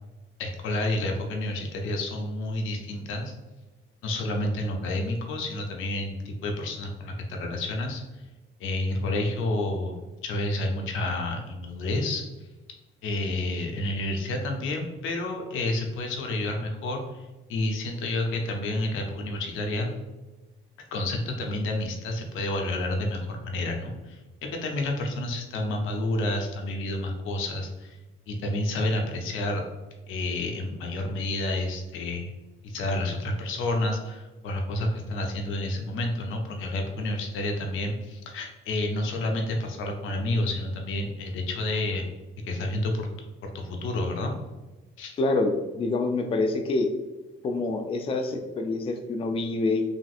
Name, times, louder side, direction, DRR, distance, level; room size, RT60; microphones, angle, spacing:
voice 1, 0.4-3.3 4.0-8.0 8.6-12.2 13.0-19.9 20.9-24.2 24.6-28.0 28.3-29.6 30.1-32.3 32.6-42.1 42.5-43.1 43.4-44.3 45.0-45.2, left 1 dB, 85° left, 2 dB, 0.6 m, -29 dB
voice 2, 45.2-46.9 47.4-49.8, left 3 dB, 30° left, 5 dB, 0.3 m, -26 dB
3.4 x 2.5 x 2.3 m, 1.1 s
cardioid pair, 90°, 20 cm